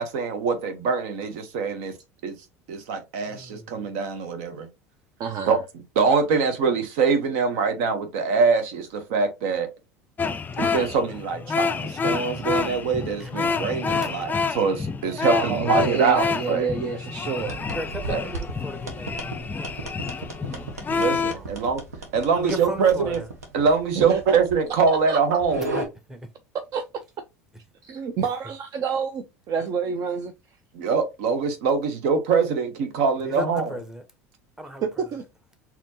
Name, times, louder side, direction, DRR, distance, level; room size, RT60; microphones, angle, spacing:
voice 1, 0.0-1.9 2.2-2.4 2.7-4.7 5.5-5.6 6.0-9.7 10.6-16.7 18.1-18.2 20.9-21.8 22.1-23.2 23.5-25.7 30.7-33.7, right 5 dB, 65° right, 0.9 m, -23 dB
voice 2, 3.3-3.8 13.2-13.3 14.0-14.1 17.7-20.8 21.2-21.5 22.3-23.3 25.6-26.3 33.2-34.0 34.6-35.1, equal, 5° right, 1.0 m, -36 dB
voice 3, 5.2-5.6 15.3-17.6 24.0-24.4 24.9-25.2 26.7-26.8 27.8-30.3 35.0-35.2, right 6 dB, 45° right, 0.6 m, -28 dB
sound 1, 10.2-21.3, left 5 dB, 20° left, 0.4 m, -28 dB
sound 2, 17.4-25.9, right 2 dB, 85° right, 1.1 m, -36 dB
4.2 x 2.9 x 2.8 m
hypercardioid pair, 70°, 8 cm